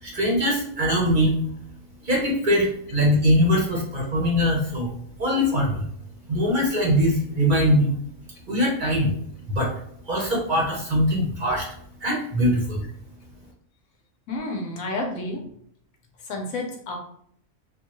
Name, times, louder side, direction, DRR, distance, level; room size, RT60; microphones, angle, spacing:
voice 1, 0.0-1.3 2.0-4.9 5.2-5.9 6.3-8.0 8.5-9.1 9.5-9.7 10.0-11.7 12.0-12.8, equal, 40° right, -2 dB, 0.8 m, -22 dB
voice 2, 14.3-15.4 16.2-17.0, left 2 dB, 75° left, 1 dB, 1.1 m, -30 dB
3.9 x 2.3 x 3.0 m, 0.67 s
omnidirectional pair, 1.5 m